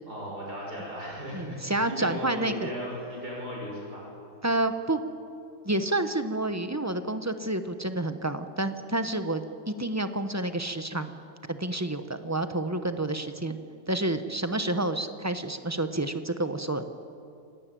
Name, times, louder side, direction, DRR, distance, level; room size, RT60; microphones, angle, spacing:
voice 1, 0.1-4.1, equal, 65° right, -3 dB, 6.8 m, -36 dB
voice 2, 1.3-2.7 4.4-5.0 5.6-11.2 11.5-13.6 13.9-16.8, right 2 dB, 15° right, 9 dB, 0.7 m, -29 dB
27.0 x 17.5 x 9.2 m, 2.5 s
omnidirectional pair, 1.9 m